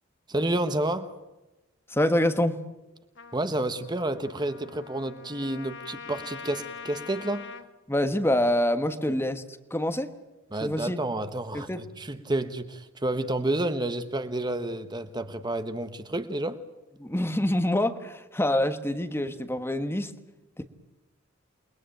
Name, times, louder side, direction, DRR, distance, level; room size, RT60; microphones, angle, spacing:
voice 1, 0.3-1.1 3.3-7.5 10.5-16.6, right 1 dB, 20° right, 1.1 m, -30 dB
voice 2, 1.9-2.6 7.9-9.4 9.7-10.1 10.6-11.0 11.5-11.8 17.0-20.1 20.6-20.7, left 1 dB, 10° left, 1.3 m, -26 dB
Trumpet, 3.2-7.7, left 6 dB, 55° left, 1.6 m, -43 dB
29.0 x 21.5 x 9.1 m
head